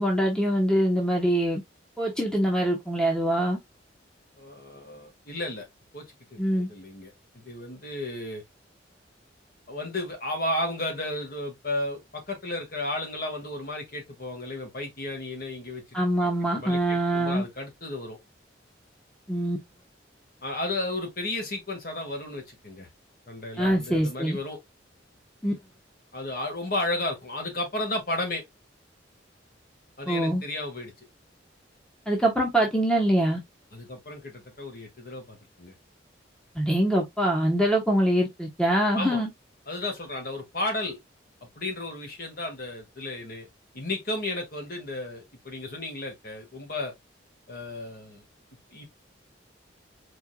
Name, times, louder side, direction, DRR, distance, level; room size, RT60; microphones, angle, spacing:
voice 1, 0.0-1.6 2.0-3.6 6.4-6.7 15.9-17.4 19.3-19.6 23.6-24.4 25.4-25.5 30.1-30.4 32.1-33.4 36.5-39.3, right 1 dB, 5° left, 1.2 m, -24 dB
voice 2, 4.4-5.7 5.9-6.0 6.3-6.4 6.7-8.4 9.7-15.8 16.2-18.2 20.4-22.9 23.3-24.6 26.1-28.4 30.0-30.9 33.7-35.7 39.0-39.2 39.7-41.0 41.4-43.5 43.7-46.9 47.5-48.2 48.7-48.9, left 2 dB, 50° left, 2.0 m, -33 dB
4.5 x 4.4 x 2.4 m
head